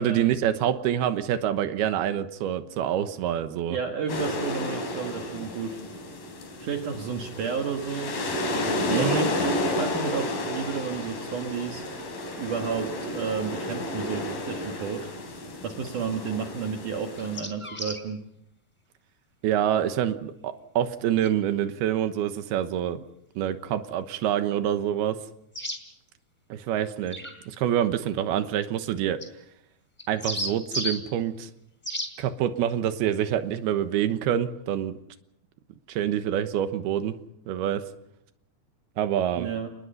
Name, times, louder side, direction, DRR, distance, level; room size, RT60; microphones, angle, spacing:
voice 1, 0.0-3.8 8.9-9.3 19.4-23.0 23.4-25.2 26.5-27.2 27.5-29.2 30.1-31.5 32.2-35.0 35.9-37.2 37.5-37.8 39.0-39.5, right 10 dB, 90° right, 9 dB, 3.1 m, -26 dB
voice 2, 3.7-5.8 6.6-8.1 9.0-11.8 12.4-15.1 15.6-18.2 39.4-39.7, right 6 dB, 60° right, 3 dB, 3.0 m, -32 dB
sound 1, 4.1-17.4, left 1 dB, 65° left, 5.7 m, -31 dB
sound 2, 17.2-18.0 21.2-21.3 25.5-25.8 27.1-27.3 29.2-29.3 30.0-31.0 31.8-32.1, equal, 10° left, 3.6 m, -32 dB
29.0 x 20.0 x 5.6 m, 0.76 s
omnidirectional pair, 4.4 m